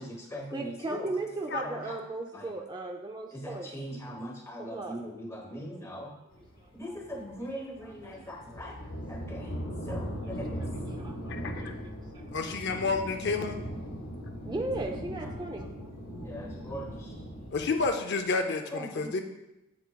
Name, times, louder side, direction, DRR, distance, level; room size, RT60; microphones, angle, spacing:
voice 1, 0.0-1.1 1.6-1.8 2.3-2.5 3.3-6.1 6.8-8.8 9.1-9.5 9.9-10.6 16.2-17.2 18.7-19.2, equal, 15° left, 1 dB, 1.1 m, -40 dB
voice 2, 0.5-3.7 4.6-5.0 6.6-7.0 7.4-8.4 9.9-12.6 13.4-13.5 14.4-15.9 17.3-17.4, right 2 dB, 20° right, 3 dB, 0.4 m, -38 dB
sound 1, 6.3-17.9, equal, 75° left, 1.5 m, -39 dB
voice 3, 11.3-11.7 12.3-13.6 17.5-19.2, left 4 dB, 50° left, 5 dB, 0.5 m, -30 dB
8.1 x 8.0 x 2.2 m, 0.95 s
head